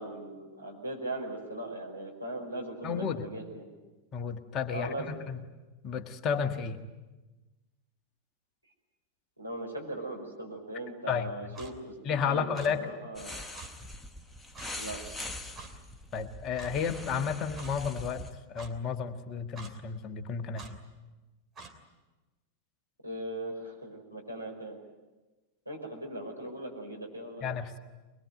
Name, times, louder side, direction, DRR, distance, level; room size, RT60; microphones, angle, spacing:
voice 1, 0.0-3.7 4.7-5.2 9.4-12.0 12.2-13.4 14.8-15.0 23.0-24.8 25.7-27.6, right 1 dB, 90° right, -1 dB, 5.3 m, -39 dB
voice 2, 2.8-3.2 4.1-4.9 5.3-5.4 5.8-6.8 11.1-11.3 12.0-12.8 16.1-18.2 18.5-20.8 27.4-27.8, left 6 dB, 30° left, 7 dB, 1.6 m, -32 dB
Clock, 11.5-11.7 12.5-12.7 13.5-13.7 14.5-14.7 15.6-15.7 16.6-16.7 17.5-17.7 18.5-18.7 19.5-19.7 20.5-20.7 21.6-21.7, right 4 dB, 20° right, 3.0 m, -46 dB
sound 1, 13.1-18.3, left 1 dB, 10° left, 1.4 m, -43 dB
23.0 x 22.0 x 9.2 m, 1.2 s
figure-of-eight pair, 90°, 0 cm